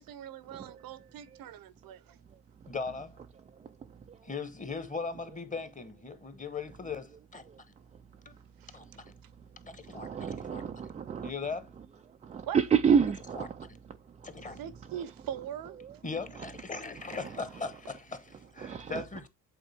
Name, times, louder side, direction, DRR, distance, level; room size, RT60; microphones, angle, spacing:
voice 1, 0.0-2.2 8.6-8.8 12.5-12.6 14.6-15.8, right 10 dB, 45° right, 0.7 m, -41 dB
voice 2, 2.7-3.2 4.3-7.4 8.2-8.3 8.7-9.0 9.6-10.6 11.2-11.6 13.3-13.5 14.2-14.6 16.0-19.3, left 4 dB, 15° left, 1.1 m, -39 dB
voice 3, 9.9-11.3 12.3-13.5 14.9-15.0 15.8-16.0 17.2-17.3 18.6-19.0, right 7 dB, 15° right, 0.3 m, -28 dB
8.1 x 3.6 x 3.4 m
supercardioid pair, 85°, 48 cm